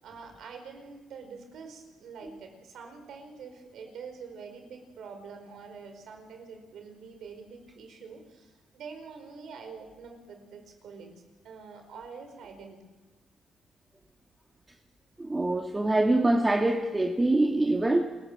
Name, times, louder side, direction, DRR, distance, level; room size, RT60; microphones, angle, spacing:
voice 1, 0.0-11.1 11.4-12.8, right 5 dB, 70° right, 5 dB, 5.0 m, -45 dB
voice 2, 15.2-18.2, right 2 dB, 20° right, 3 dB, 1.6 m, -24 dB
28.0 x 14.0 x 7.7 m, 1.2 s
cardioid pair, 90°, 0 cm